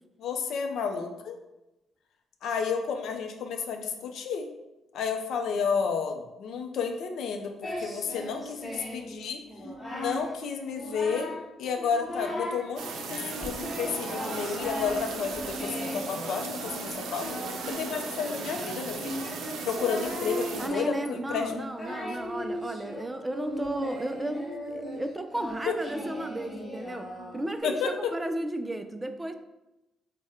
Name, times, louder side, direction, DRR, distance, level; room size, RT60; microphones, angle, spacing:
voice 1, 0.2-1.4 2.4-4.5 4.9-9.4 9.9-11.3 11.6-17.3 17.7-19.1 19.6-21.6 25.7-25.8 27.6-28.1, left 6 dB, 75° left, 4 dB, 0.5 m, -31 dB
Singing, 7.6-9.1 9.5-10.3 10.6-11.5 11.8-12.7 13.1-27.6, left 1 dB, 20° left, 1.0 m, -38 dB
sound 1, 12.8-20.7, right 4 dB, 85° right, 0.5 m, -37 dB
voice 2, 20.6-29.3, right 1 dB, 15° right, 7 dB, 0.3 m, -34 dB
3.5 x 2.1 x 4.2 m, 0.98 s
cardioid pair, 90°, 0 cm